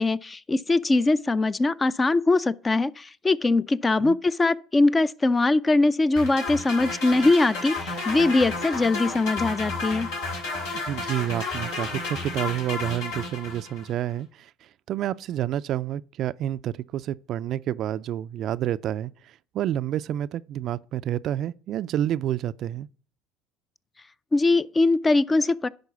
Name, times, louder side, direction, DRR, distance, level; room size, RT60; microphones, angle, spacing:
voice 1, 0.0-10.1 24.3-25.7, left 2 dB, 25° left, 0.5 m, -22 dB
sound 1, 6.2-13.9, left 3 dB, 80° left, 2.9 m, -32 dB
voice 2, 10.9-14.5 14.9-22.9, right 12 dB, 55° right, 0.4 m, -29 dB
10.5 x 3.9 x 6.9 m
hypercardioid pair, 75°, 0 cm